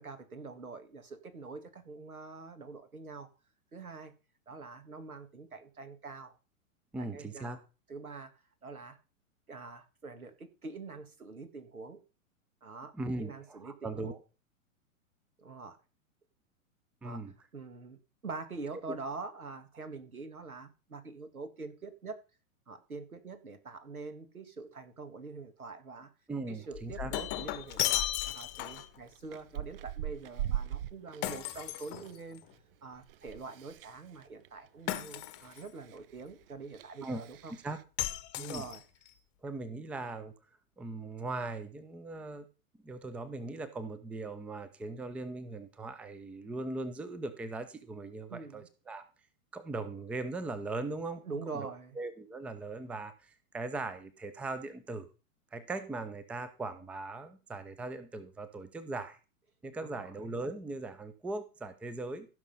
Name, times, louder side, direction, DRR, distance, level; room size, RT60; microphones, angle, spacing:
voice 1, 0.0-3.3 3.7-4.1 4.5-6.4 7.0-7.6 7.9-8.3 8.6-9.0 9.5-12.0 12.6-14.1 15.4-15.8 17.0-17.2 17.5-22.2 22.7-26.1 26.5-32.4 32.8-37.5 38.4-38.8 48.3-48.7 51.2-52.0 59.8-60.1, right 4 dB, 80° right, 2.1 m, -45 dB
voice 2, 6.9-7.6 12.9-14.2 17.0-17.3 18.9-19.0 26.3-27.1 37.0-37.2 37.6-37.8 38.4-38.6 39.4-40.3 40.8-42.5 42.8-49.0 49.5-51.2 51.6-51.7 52.0-55.1 55.5-59.2 59.6-62.3, right 2 dB, 5° right, 0.6 m, -39 dB
Shatter, 26.7-29.0 31.2-32.5 34.9-35.7 38.0-39.1, left 16 dB, 25° left, 1.0 m, -35 dB
Chewing mastication, 26.9-27.4 27.7-28.0 28.4-32.1 32.4-37.8, right 11 dB, 40° right, 0.7 m, -41 dB
15.5 x 6.2 x 5.5 m
figure-of-eight pair, 105°, 42 cm